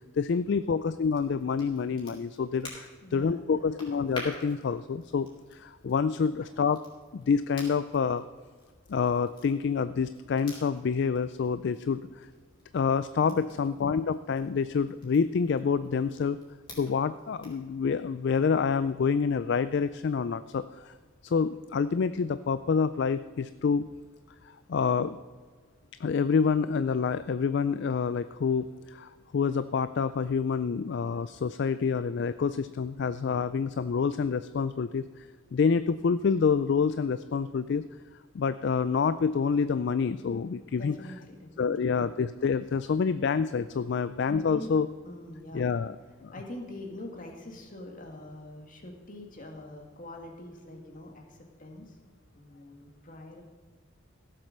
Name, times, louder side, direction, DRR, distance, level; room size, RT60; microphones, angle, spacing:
voice 1, 0.1-6.8 7.1-8.3 8.9-12.3 12.7-16.4 16.8-20.9 21.2-23.9 24.5-25.2 26.0-37.8 38.3-40.9 41.6-44.9 45.5-46.0 46.2-46.3, left 5 dB, 55° left, 14 dB, 0.3 m, -27 dB
Crackle, 1.0-17.7, left 1 dB, 25° left, 4.0 m, -50 dB
voice 2, 3.0-4.0 13.2-13.6 40.7-42.0 44.3-44.7 45.0-45.6 46.3-52.0 52.3-53.4, left 1 dB, 40° left, 1 dB, 2.1 m, -44 dB
16.0 x 7.7 x 6.6 m, 1.5 s
head